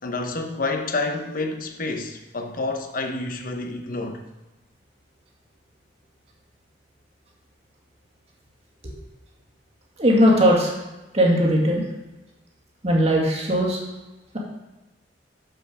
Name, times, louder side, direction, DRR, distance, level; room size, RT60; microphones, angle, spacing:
voice 1, 0.0-4.3, left 3 dB, 50° left, 1.0 m, -29 dB
voice 2, 10.0-10.7 11.1-11.8 12.8-13.8, equal, 35° right, 1.9 m, -18 dB
6.8 x 6.4 x 6.2 m
head